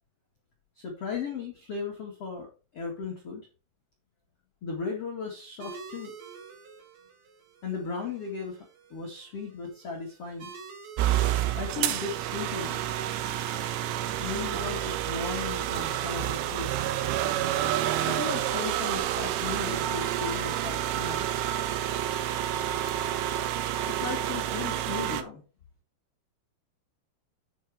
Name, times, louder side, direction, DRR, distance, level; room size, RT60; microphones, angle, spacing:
voice 1, 0.7-3.5 4.6-6.1 7.6-8.6 8.9-10.5 11.5-12.8 14.2-16.7 18.0-21.2 23.9-25.4, left 5 dB, 75° left, -1 dB, 1.4 m, -36 dB
sound 1, 5.6-24.7, right 5 dB, 60° right, 2.0 m, -50 dB
sound 2, 11.0-25.2, right 12 dB, 75° right, 2.7 m, -29 dB
9.2 x 5.6 x 4.7 m, 0.32 s
omnidirectional pair, 5.9 m